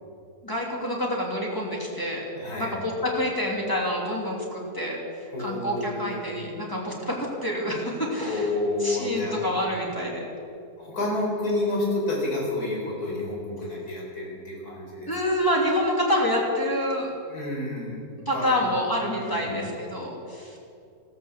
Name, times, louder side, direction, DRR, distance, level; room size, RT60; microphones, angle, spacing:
voice 1, 0.4-2.3 2.6-5.0 5.4-8.5 8.8-10.2 15.1-17.1 18.3-20.6, equal, 15° left, -2 dB, 2.8 m, -27 dB
voice 2, 2.3-2.7 5.3-6.2 8.2-9.5 10.8-15.3 17.3-18.0 18.3-18.8 19.2-19.6, left 2 dB, 75° left, -3 dB, 4.9 m, -29 dB
14.5 x 13.5 x 7.4 m, 2.5 s
omnidirectional pair, 1.6 m